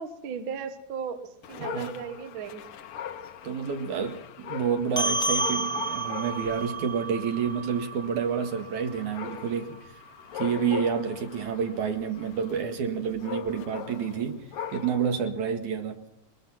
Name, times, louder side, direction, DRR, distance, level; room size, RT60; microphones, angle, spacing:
voice 1, 0.0-2.9, right 6 dB, 50° right, 1.6 m, -36 dB
Dog, 1.4-15.2, left 9 dB, 65° left, 1.5 m, -41 dB
voice 2, 1.6-1.9 3.4-9.8 10.3-14.4 14.7-16.0, right 7 dB, 70° right, 3.2 m, -29 dB
sound 1, 5.0-9.7, right 2 dB, 5° left, 0.6 m, -32 dB
22.0 x 21.0 x 5.9 m
omnidirectional pair, 3.6 m